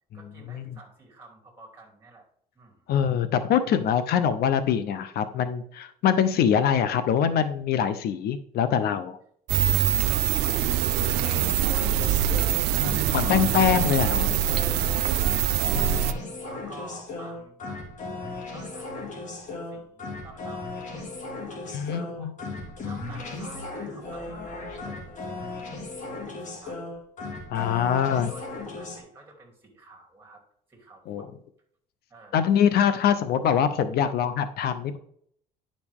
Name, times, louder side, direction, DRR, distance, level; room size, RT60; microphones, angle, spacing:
voice 1, 0.1-2.3 2.5-2.9 10.1-12.5 13.1-13.5 13.9-14.3 15.1-26.9 27.8-28.5 28.8-30.4 30.7-31.4 32.1-32.4, right 2 dB, 15° right, 0 dB, 2.8 m, -50 dB
voice 2, 2.9-9.2 13.1-14.3 15.7-16.2 21.7-22.3 27.5-28.3 31.1-31.3 32.3-35.0, left 8 dB, 70° left, 12 dB, 0.6 m, -24 dB
sound 1, 9.5-16.1, right 11 dB, 85° right, 0.5 m, -24 dB
sound 2, 11.0-29.0, left 3 dB, 45° left, 2.5 m, -36 dB
10.5 x 5.2 x 3.5 m, 0.65 s
cardioid pair, 110°, 17 cm